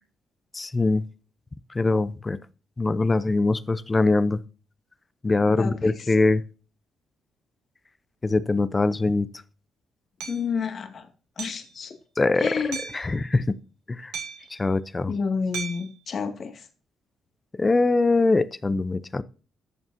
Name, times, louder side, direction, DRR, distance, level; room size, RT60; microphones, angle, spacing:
voice 1, 0.5-1.0 1.7-2.4 2.8-4.4 5.2-6.4 8.2-9.3 12.2-12.5 12.9-13.6 13.9-14.1 14.5-15.1 17.6-19.2, left 3 dB, 25° left, 0.6 m, -22 dB
voice 2, 5.4-6.0 10.3-11.1 11.4-11.9 12.4-12.8 15.1-16.7, left 5 dB, 50° left, 2.1 m, -30 dB
Hammer, 10.2-10.4 11.4-11.7 12.7-13.1 14.1-14.5 15.5-15.9, right 6 dB, 90° right, 2.6 m, -35 dB
13.5 x 7.1 x 2.8 m
cardioid pair, 90°, 0 cm